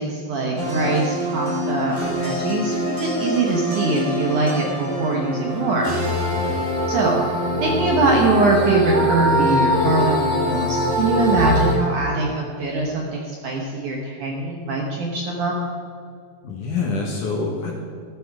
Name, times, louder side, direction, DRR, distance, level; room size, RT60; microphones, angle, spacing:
voice 1, 0.0-5.9 6.9-7.2 7.6-15.5, right 2 dB, 65° right, 0 dB, 2.0 m, -23 dB
sound 1, 0.6-11.8, equal, 25° right, 2.4 m, -23 dB
voice 2, 16.4-17.7, left 4 dB, 60° left, 0 dB, 2.4 m, -26 dB
14.0 x 13.5 x 4.8 m, 2.5 s
omnidirectional pair, 5.0 m